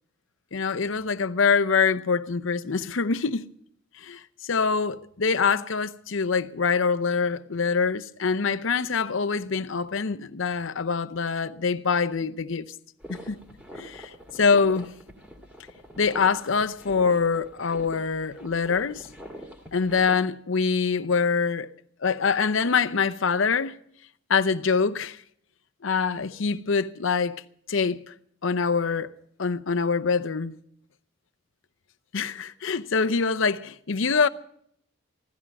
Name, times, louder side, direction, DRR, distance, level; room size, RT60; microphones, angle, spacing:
voice 1, 0.5-3.5 4.0-12.7 13.1-13.4 13.8-14.9 16.0-19.1 19.7-21.7 22.0-23.8 24.3-25.2 25.8-27.4 27.7-28.0 28.4-29.1 29.4-30.6 32.1-34.3, left 5 dB, 70° left, 0.7 m, -25 dB
sound 1, 13.0-20.2, equal, 10° right, 2.4 m, -44 dB
16.5 x 13.5 x 5.4 m
head